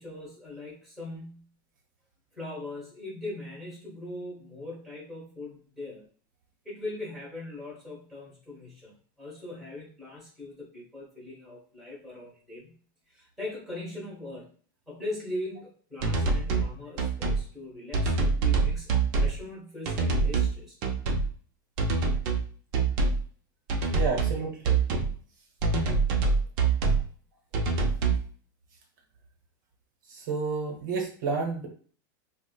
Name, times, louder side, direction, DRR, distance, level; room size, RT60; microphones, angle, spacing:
voice 1, 0.0-1.4 2.3-6.0 6.6-12.8 13.1-14.5 14.9-18.9 19.2-20.8, left 2 dB, ahead, -7 dB, 1.3 m, -40 dB
sound 1, 16.0-16.7 17.0-17.4 17.9-19.4 19.9-20.5 20.8-21.3 21.8-22.5 22.7-23.2 23.7-24.4 24.6-25.1 25.6-27.0 27.5-28.2, right 4 dB, 40° right, 0.6 m, -25 dB
voice 2, 23.9-24.8 30.1-31.7, right 4 dB, 65° right, 1 dB, 0.9 m, -30 dB
4.7 x 2.1 x 2.3 m, 0.44 s
supercardioid pair, 165°, 11 cm